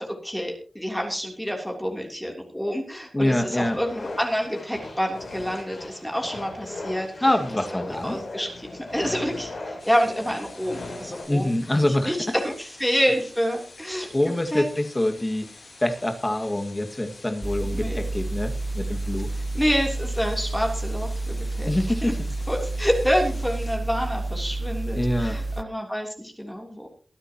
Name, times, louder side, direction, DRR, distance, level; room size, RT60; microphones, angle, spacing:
voice 1, 0.0-7.2 7.7-12.2 12.4-14.7 17.7-18.0 19.5-21.7 22.0-22.1 22.5-26.9, equal, 5° left, 1 dB, 3.1 m, -28 dB
voice 2, 3.1-3.8 7.2-8.2 11.3-12.1 14.1-15.5 15.8-19.3 21.6-22.2 25.0-25.4, left 1 dB, 20° left, 5 dB, 1.9 m, -25 dB
sound 1, 3.5-11.2, left 2 dB, 80° left, 7.7 m, -38 dB
sound 2, 9.8-23.8, left 3 dB, 65° left, 7.6 m, -47 dB
sound 3, 17.4-25.6, right 2 dB, 25° right, 0.5 m, -30 dB
23.0 x 9.8 x 2.9 m, 0.42 s
wide cardioid pair, 70°, 0 cm